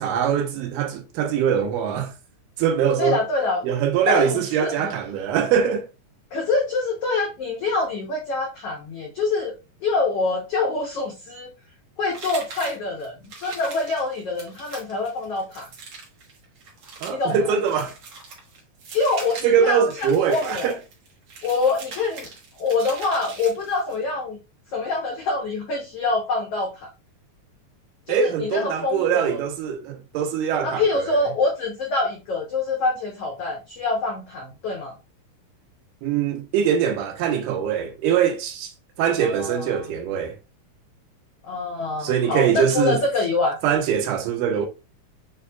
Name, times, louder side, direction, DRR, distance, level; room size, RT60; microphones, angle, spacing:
voice 1, 0.0-2.1 2.6-3.2 3.6-5.9 17.0-17.9 19.4-20.8 28.1-31.2 36.0-38.7 39.0-40.4 42.0-43.0 43.6-44.7, right 8 dB, 85° right, 2.3 m, -22 dB
voice 2, 3.0-3.7 4.1-4.9 6.3-9.6 9.8-11.5 12.0-15.7 17.1-17.4 18.9-20.7 21.4-22.3 22.6-24.4 24.7-26.9 28.1-29.4 30.6-34.9 39.2-39.8 41.4-43.6, left 3 dB, 85° left, 1.3 m, -25 dB
sound 1, 12.1-24.0, right 4 dB, 65° right, 1.3 m, -41 dB
7.1 x 2.6 x 2.2 m
omnidirectional pair, 3.9 m